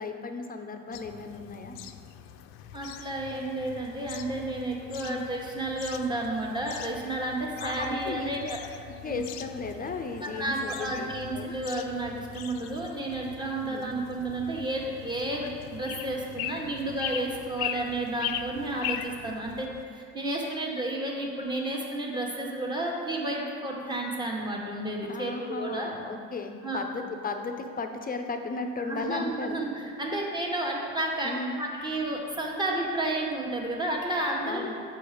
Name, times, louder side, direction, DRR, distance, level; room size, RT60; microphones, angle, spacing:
voice 1, 0.0-1.8 5.1-5.2 7.6-8.5 9.0-11.6 13.6-13.8 25.1-29.6 31.2-31.6 34.5-34.7, left 3 dB, 25° left, 5 dB, 0.6 m, -35 dB
sound 1, 0.9-19.8, left 11 dB, 75° left, 0.5 m, -41 dB
voice 2, 2.7-8.6 9.1-9.2 10.2-25.9 26.6-26.8 28.8-31.3 31.6-34.7, right 2 dB, 10° right, -1 dB, 1.3 m, -31 dB
6.8 x 5.0 x 5.0 m, 2.2 s
supercardioid pair, 90°, 36 cm